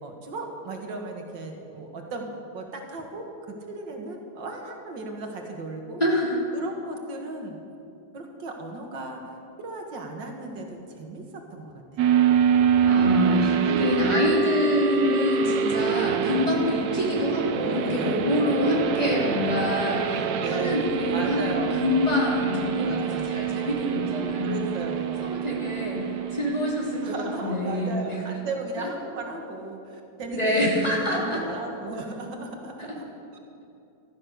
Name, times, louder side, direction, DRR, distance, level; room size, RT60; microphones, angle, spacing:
voice 1, 0.0-2.3 2.5-6.0 6.5-7.6 8.1-9.2 9.6-12.1 17.6-18.4 20.1-20.8 21.1-22.0 22.8-23.3 24.4-25.3 27.0-33.1, right 2 dB, 85° right, 2 dB, 2.4 m, -36 dB
voice 2, 6.0-6.4 12.8-20.0 20.4-24.6 25.2-28.2 30.3-31.4, left 1 dB, 20° left, -4 dB, 3.0 m, -26 dB
sound 1, 12.0-27.7, right 7 dB, 65° right, 1.2 m, -26 dB
15.0 x 13.0 x 6.6 m, 2.7 s
omnidirectional pair, 2.0 m